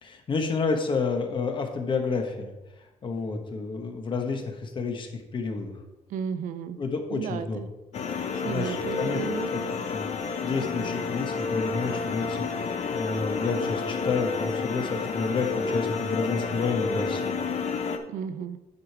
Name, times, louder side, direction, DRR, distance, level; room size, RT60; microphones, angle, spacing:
voice 1, 0.0-2.5 3.0-5.7 6.8-7.6 8.4-9.2 9.5-9.6 9.9-10.1 10.4-17.4, left 4 dB, 35° left, 4 dB, 1.2 m, -30 dB
voice 2, 6.1-6.8 7.1-7.7 8.4-9.5 18.1-18.6, right 7 dB, 75° right, 11 dB, 0.6 m, -33 dB
sound 1, 7.9-18.0, left 4 dB, 55° left, 0.8 m, -30 dB
9.5 x 5.1 x 4.6 m, 1.0 s
cardioid pair, 155°, 14 cm